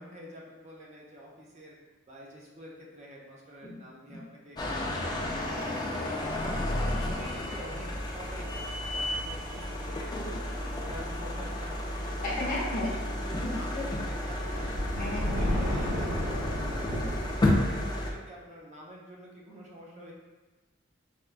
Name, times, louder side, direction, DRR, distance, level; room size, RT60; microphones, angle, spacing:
voice 1, 0.0-1.8 2.1-6.5 6.9-8.7 8.9-10.1 10.5-14.9 15.3-20.1, equal, 35° right, -3 dB, 0.5 m, -47 dB
sound 1, 4.6-18.1, left 1 dB, 20° left, 0.3 m, -32 dB
sound 2, 8.1-12.7 12.9-13.1 13.5-17.3, equal, 70° right, 1.0 m, -35 dB
voice 2, 12.2-12.9 13.4-13.9 15.0-15.5 16.9-17.0, left 1 dB, 45° left, -5 dB, 0.8 m, -34 dB
4.3 x 2.2 x 2.4 m, 1.2 s
head